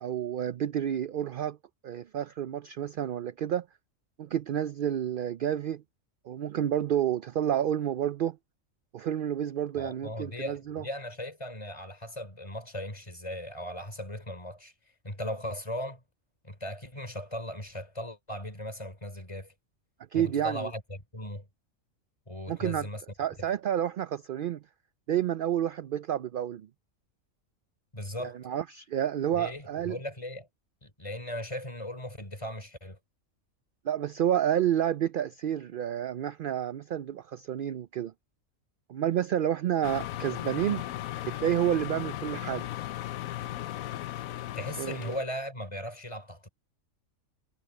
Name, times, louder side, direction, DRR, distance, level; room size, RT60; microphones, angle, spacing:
voice 1, 0.0-1.6 1.8-3.7 4.2-5.8 6.3-8.4 8.9-10.8 20.1-20.7 22.5-22.9 23.2-24.6 25.1-26.7 28.2-30.0 33.8-38.1 38.9-40.8 41.3-42.7 44.8-45.2, right 10 dB, 65° right, 0.5 m, -30 dB
voice 2, 9.8-14.7 15.0-16.0 16.4-19.5 20.1-21.5 22.3-23.0 27.9-28.4 29.3-30.5 30.8-33.0 44.6-46.5, left 1 dB, 25° left, 3.6 m, -38 dB
sound 1, 39.8-45.2, left 14 dB, 85° left, 1.1 m, -36 dB
omnidirectional pair, 1.4 m